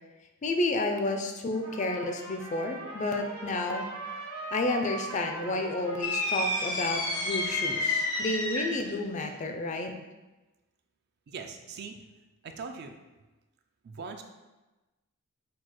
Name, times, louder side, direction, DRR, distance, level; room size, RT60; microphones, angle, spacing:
voice 1, 0.4-3.8 4.5-9.9, left 2 dB, 30° left, 4 dB, 0.3 m, -31 dB
Trumpet, 1.5-8.3, right 2 dB, 85° right, 1.0 m, -42 dB
sound 1, 6.0-8.9, left 2 dB, 90° left, 0.8 m, -30 dB
voice 2, 11.3-12.0 12.4-13.0 13.8-14.2, right 5 dB, 45° right, 5 dB, 0.3 m, -41 dB
6.0 x 2.3 x 3.0 m, 1.1 s
head